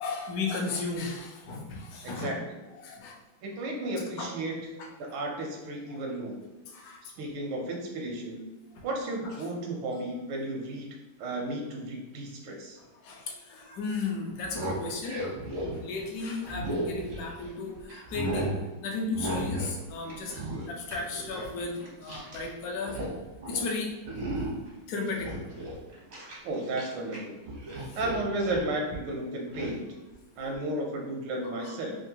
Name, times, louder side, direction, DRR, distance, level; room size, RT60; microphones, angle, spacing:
voice 1, 0.0-2.4 2.8-3.2 4.2-4.3 4.8-4.9 5.9-6.0 6.7-7.0 8.7-8.8 12.8-15.2 15.7-23.0 23.5-23.9 24.9-25.3 27.9-28.0 31.4-31.7, left 3 dB, 75° left, 1 dB, 0.8 m, -35 dB
voice 2, 2.0-2.4 3.4-6.4 7.2-8.4 8.8-10.9 11.2-12.8 26.4-27.3 28.0-29.8 30.4-32.0, right 1 dB, 85° right, 1 dB, 1.4 m, -33 dB
sound 1, 14.3-17.6 17.9-18.6 19.1-19.8 20.0-22.5 22.7-23.1 23.4-23.7 24.1-24.7 25.1-27.2 27.5-28.7 29.5-29.7, right 1 dB, 60° right, 0.7 m, -35 dB
3.6 x 2.4 x 2.7 m, 1.1 s
omnidirectional pair, 2.2 m